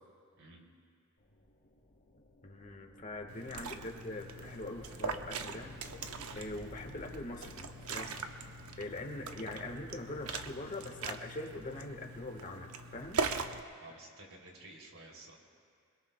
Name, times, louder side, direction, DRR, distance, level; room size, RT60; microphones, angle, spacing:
sound 1, 1.2-9.2, left 1 dB, 55° left, 2.4 m, -54 dB
voice 1, 2.4-5.7 6.3-8.2 8.8-13.2, left 2 dB, 35° left, 2 dB, 1.4 m, -43 dB
Liquid, 3.3-13.6, right 4 dB, 90° right, 0.8 m, -41 dB
voice 2, 13.8-15.3, right 2 dB, 70° right, -1 dB, 3.0 m, -53 dB
27.0 x 22.0 x 2.2 m, 2.2 s
head